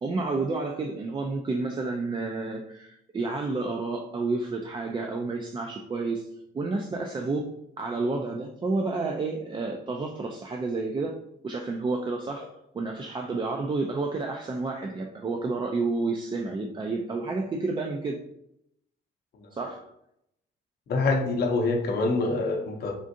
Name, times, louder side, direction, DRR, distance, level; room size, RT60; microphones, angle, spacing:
voice 1, 0.0-6.3 6.5-7.4 7.8-11.1 11.4-18.2 19.5-19.9, right 3 dB, 25° right, 2 dB, 0.3 m, -30 dB
voice 2, 20.9-22.9, left 3 dB, 55° left, 1 dB, 0.6 m, -26 dB
3.6 x 2.5 x 2.6 m, 0.78 s
cardioid pair, 90°, 20 cm